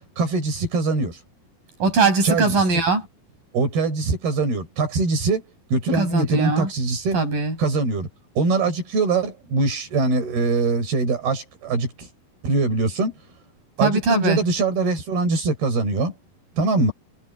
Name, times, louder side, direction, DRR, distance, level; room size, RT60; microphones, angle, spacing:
voice 1, 0.2-1.2 2.2-2.7 3.5-5.4 5.7-7.2 7.6-8.1 8.4-12.1 12.4-13.1 13.8-16.1 16.6-16.9, right 3 dB, 85° right, 7.7 m, -22 dB
voice 2, 1.8-3.1 5.9-6.7 7.1-7.6 13.8-14.4, right 3 dB, 65° right, 9.3 m, -20 dB
omnidirectional pair, 4.3 m